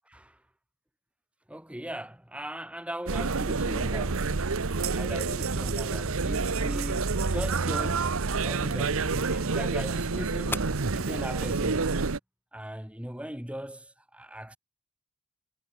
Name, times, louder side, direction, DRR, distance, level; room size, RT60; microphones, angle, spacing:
voice 1, 0.1-0.4 1.5-4.3 4.6-8.1 8.4-12.2 12.5-14.6, right 1 dB, 5° right, 1.4 m, -39 dB
sound 1, 3.1-12.2, right 4 dB, 70° right, 0.9 m, -28 dB
sound 2, 5.5-11.5, left 2 dB, 10° left, 3.1 m, -45 dB
head